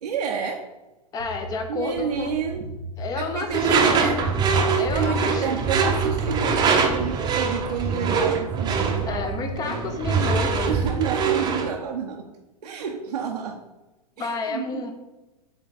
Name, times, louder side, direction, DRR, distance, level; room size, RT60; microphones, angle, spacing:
voice 1, 0.0-0.6 1.7-2.7 3.1-4.4 4.6-10.0 10.6-12.3 12.6-13.6 14.2-14.9, right 7 dB, 75° right, -1 dB, 0.8 m, -30 dB
voice 2, 1.1-2.4 3.0-4.3 4.8-5.6 9.0-10.7 14.2-14.9, left 4 dB, 20° left, 6 dB, 0.7 m, -30 dB
sound 1, 1.2-11.6, left 1 dB, 70° left, 1.5 m, -38 dB
Door / Screech, 3.5-11.7, right 5 dB, 20° right, 0.8 m, -23 dB
8.1 x 3.3 x 4.0 m, 1.0 s
figure-of-eight pair, 105°, 20 cm